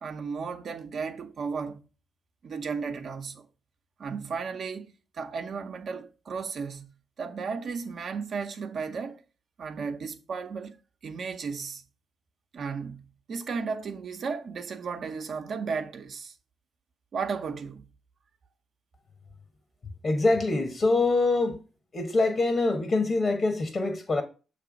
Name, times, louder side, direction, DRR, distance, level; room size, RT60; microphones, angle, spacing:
voice 1, 0.0-1.8 2.4-3.5 4.0-6.9 7.2-9.2 9.6-10.8 11.0-11.8 12.5-16.3 17.1-17.9, right 5 dB, 60° right, 0.8 m, -34 dB
voice 2, 20.0-21.6 21.9-24.2, left 3 dB, 50° left, 1.3 m, -24 dB
6.8 x 3.4 x 5.1 m
supercardioid pair, 50°, 0 cm